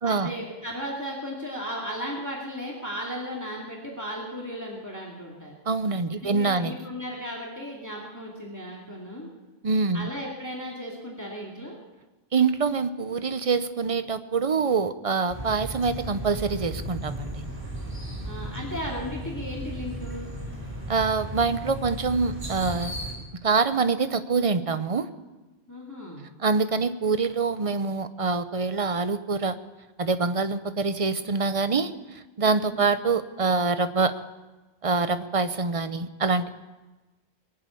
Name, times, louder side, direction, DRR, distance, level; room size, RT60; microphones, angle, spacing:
voice 1, 0.0-5.6 6.1-9.3 9.9-11.8 18.2-20.3 25.7-26.3 32.6-32.9, equal, 15° left, -3 dB, 2.3 m, -35 dB
voice 2, 5.7-6.7 9.6-10.1 12.3-17.3 20.9-23.0 23.4-25.1 26.4-29.6 30.0-31.9 32.4-34.2 34.8-36.5, right 4 dB, 35° right, 11 dB, 0.7 m, -25 dB
sound 1, 15.3-23.1, equal, 55° right, 4.7 m, -35 dB
22.0 x 7.8 x 8.4 m, 1.1 s
omnidirectional pair, 1.1 m